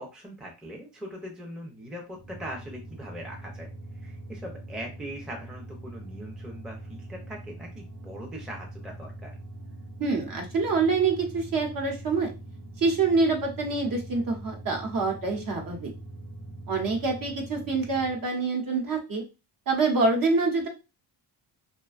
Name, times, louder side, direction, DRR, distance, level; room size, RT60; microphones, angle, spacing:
voice 1, 0.0-9.3, equal, ahead, 0 dB, 0.5 m, -41 dB
sound 1, 2.1-18.2, right 1 dB, 90° right, 1.0 m, -43 dB
voice 2, 10.0-12.3 12.8-15.9 16.7-19.2 19.7-20.7, right 4 dB, 50° right, 1 dB, 0.8 m, -26 dB
2.5 x 2.2 x 2.3 m, 0.28 s
cardioid pair, 125°, 43 cm